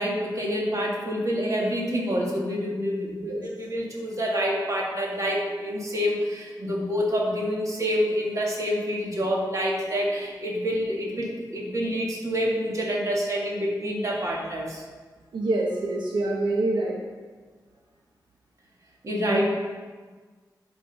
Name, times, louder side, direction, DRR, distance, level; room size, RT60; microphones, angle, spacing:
voice 1, 0.0-14.8 19.0-19.5, equal, 45° right, -3 dB, 2.3 m, -27 dB
voice 2, 15.3-16.9 19.3-19.5, right 2 dB, 90° right, -1 dB, 1.1 m, -26 dB
10.5 x 5.3 x 5.5 m, 1.4 s
wide cardioid pair, 125°, 8 cm